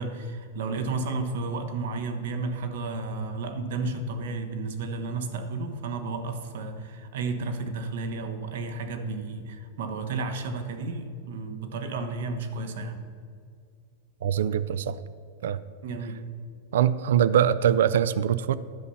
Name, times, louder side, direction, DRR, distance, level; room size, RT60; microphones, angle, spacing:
voice 1, 0.0-13.0 15.8-16.2, right 3 dB, 75° right, 7 dB, 1.0 m, -32 dB
voice 2, 14.2-15.0 15.4-15.6 16.7-18.6, right 9 dB, 90° right, 16 dB, 0.3 m, -23 dB
11.0 x 5.6 x 6.9 m, 2.2 s
supercardioid pair, 165°, 0 cm